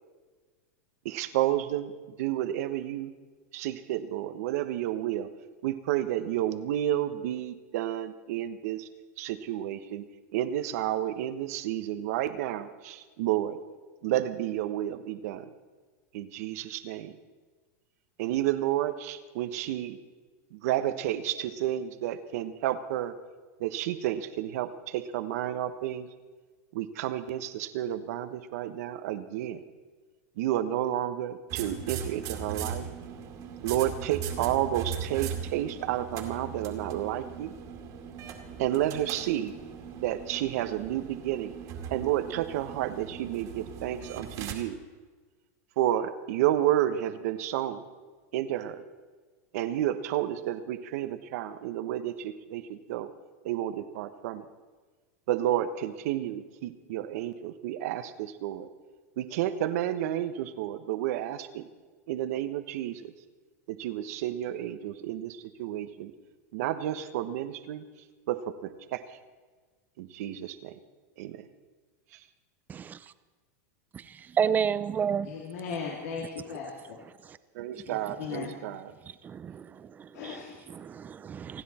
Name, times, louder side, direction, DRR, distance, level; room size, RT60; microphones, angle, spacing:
voice 1, 1.0-1.9 2.2-3.1 3.5-5.3 5.6-8.9 9.2-10.0 10.3-13.6 14.0-15.5 16.1-17.1 18.2-20.0 20.5-23.1 23.6-26.1 26.7-29.6 30.4-32.9 33.6-37.5 38.6-39.5 40.0-41.5 41.9-44.8 45.8-47.8 48.3-48.8 49.5-53.1 53.4-54.4 55.3-58.7 59.2-61.6 62.1-63.1 63.7-66.1 66.5-67.8 68.3-69.0 70.0-70.7 71.2-71.4 77.5-78.9, right 12 dB, 65° right, 1.2 m, -31 dB
sound 1, 31.5-44.5, right 7 dB, 40° right, 2.3 m, -39 dB
voice 2, 73.9-75.3 76.5-76.6 77.0-77.4 79.2-81.6, right 7 dB, 20° right, 0.5 m, -31 dB
voice 3, 75.2-76.7 77.9-78.5 80.1-80.5, left 6 dB, 70° left, 2.5 m, -37 dB
29.0 x 10.0 x 4.4 m
supercardioid pair, 140°, 9 cm